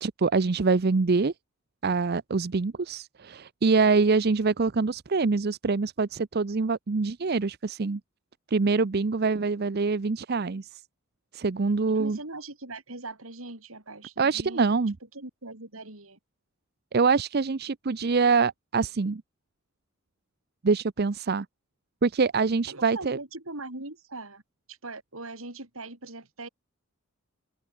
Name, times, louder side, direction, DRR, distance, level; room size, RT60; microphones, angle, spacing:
voice 1, 0.0-1.3 1.8-8.0 8.5-10.8 11.3-12.2 14.2-14.9 16.9-19.2 20.6-21.5 22.0-23.2, right 4 dB, 50° right, 0.6 m, -25 dB
voice 2, 11.9-14.8 15.1-16.2 22.7-24.4 24.7-26.5, right 2 dB, 80° right, 5.1 m, -41 dB
open air
head